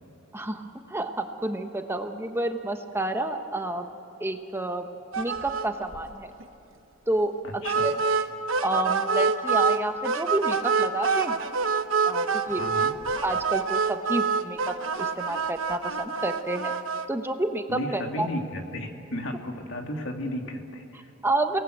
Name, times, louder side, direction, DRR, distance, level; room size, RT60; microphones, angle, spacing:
voice 1, 0.9-3.8 4.2-4.8 5.2-6.3 7.1-7.3 7.8-7.9 8.6-11.4 12.0-12.6 13.2-16.7 17.1-18.3 21.2-21.6, right 2 dB, 10° right, 6 dB, 1.1 m, -29 dB
sound 1, 5.1-5.7 5.9-6.1 6.4-6.5 7.6-9.8 10.0-17.1, right 5 dB, 75° right, 1.1 m, -26 dB
voice 2, 7.4-7.9 12.5-12.9 17.7-21.1, left 1 dB, 65° left, 3 dB, 2.6 m, -34 dB
29.5 x 19.0 x 8.0 m, 2.9 s
head